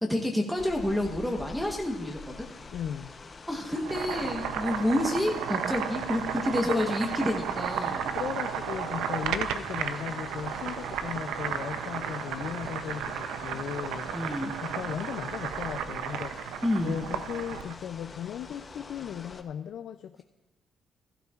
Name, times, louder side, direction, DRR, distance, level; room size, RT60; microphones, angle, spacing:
voice 1, 0.0-2.4 3.5-8.1 14.1-14.6 16.6-17.0, left 1 dB, ahead, -1 dB, 1.0 m, -29 dB
sound 1, 0.6-19.4, left 4 dB, 35° left, 0.8 m, -46 dB
voice 2, 2.7-3.1 6.6-6.9 8.1-14.1 14.6-20.2, left 9 dB, 70° left, 8 dB, 0.4 m, -37 dB
Boiling, 3.7-17.8, right 8 dB, 90° right, 0.5 m, -33 dB
15.5 x 12.5 x 2.4 m, 1.1 s
cardioid pair, 90°, 0 cm